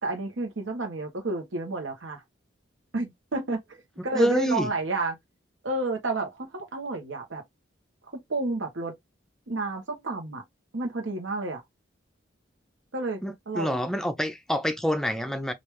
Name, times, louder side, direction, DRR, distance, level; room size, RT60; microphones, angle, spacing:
voice 1, 0.0-2.2 2.9-5.2 5.6-7.4 8.3-8.9 9.5-10.4 10.7-11.6 12.9-13.2 13.5-13.8, right 2 dB, 75° right, 0.9 m, -31 dB
voice 2, 4.1-4.7 13.2-15.5, equal, 5° left, 0.5 m, -27 dB
3.3 x 2.5 x 3.0 m
head